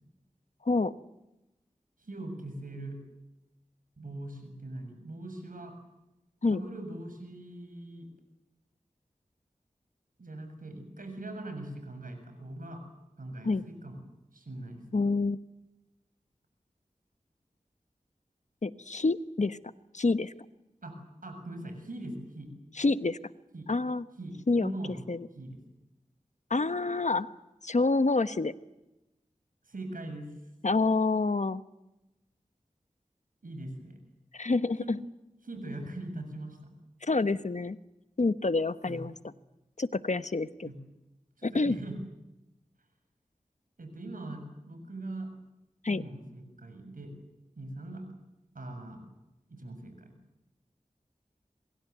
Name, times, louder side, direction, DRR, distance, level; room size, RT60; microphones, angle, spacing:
voice 1, 0.6-0.9 6.4-6.6 13.4-13.6 14.9-15.4 18.6-19.6 19.9-20.3 22.7-23.2 23.7-24.0 24.5-24.7 25.1-25.3 26.5-27.3 27.6-28.5 30.6-31.6 34.3-35.0 37.0-37.8 38.2-39.3 39.8-40.7 41.4-41.8 45.8-46.0, left 3 dB, 60° left, 13 dB, 1.1 m, -27 dB
voice 2, 2.0-3.0 4.0-5.7 6.5-8.1 10.2-12.8 13.2-14.0 14.3-14.8 20.8-21.0 21.2-22.5 23.5-23.7 24.2-24.4 24.6-25.0 25.4-25.6 29.7-30.3 33.4-34.0 34.8-34.9 35.4-36.7 38.8-39.0 40.6-40.8 41.4-42.0 43.8-45.3 45.9-47.1 47.6-48.1 48.5-49.1 49.5-50.1, right 2 dB, 90° right, 6 dB, 7.0 m, -41 dB
27.0 x 22.5 x 8.1 m, 0.96 s
wide cardioid pair, 40°, 14 cm